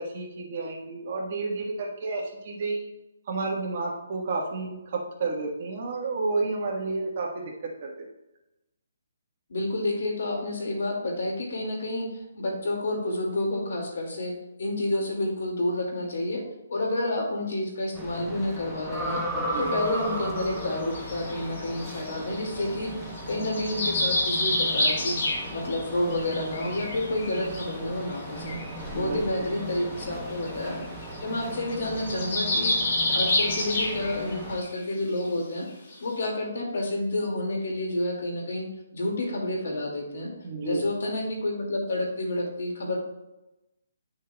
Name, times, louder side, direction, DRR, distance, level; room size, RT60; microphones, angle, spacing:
voice 1, 0.0-2.8 3.3-7.5 7.8-8.1 19.2-19.7 28.9-29.5 40.4-40.9, right 3 dB, 40° right, -1 dB, 1.4 m, -31 dB
voice 2, 9.5-16.4 16.7-19.2 19.6-25.2 25.5-28.6 28.9-30.8 31.2-32.8 33.1-35.7 36.0-38.7 38.9-40.3 40.6-43.0, left 1 dB, 65° left, 1 dB, 2.1 m, -29 dB
sound 1, 17.9-34.6, right 1 dB, ahead, 0.8 m, -36 dB
sound 2, 19.5-19.7 20.4-22.7 23.2-25.8 26.1-27.7 28.2-28.3 28.5-28.7 29.7-29.8 30.1-30.2 30.5-30.7 31.0-31.2 31.4-34.3 34.6-34.8 35.2-35.3 35.9-36.0, left 1 dB, 50° left, 1.7 m, -28 dB
10.5 x 6.3 x 2.3 m, 0.95 s
hypercardioid pair, 170°, 0 cm